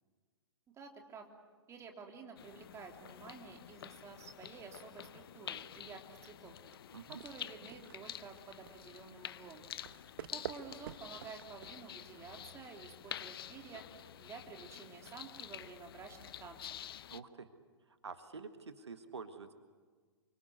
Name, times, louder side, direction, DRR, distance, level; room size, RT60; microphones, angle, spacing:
voice 1, 0.7-1.3 1.7-6.6 7.1-9.7 10.3-13.8 14.2-16.6, right 5 dB, 20° right, 3 dB, 3.4 m, -51 dB
sound 1, 2.4-17.2, left 10 dB, 55° left, 0.8 m, -49 dB
sound 2, 6.7-12.3, right 10 dB, 55° right, 1.3 m, -50 dB
voice 2, 17.1-17.5 17.9-19.5, right 5 dB, 75° right, 9 dB, 1.7 m, -48 dB
28.5 x 24.5 x 8.1 m, 1.5 s
figure-of-eight pair, 115°, 14 cm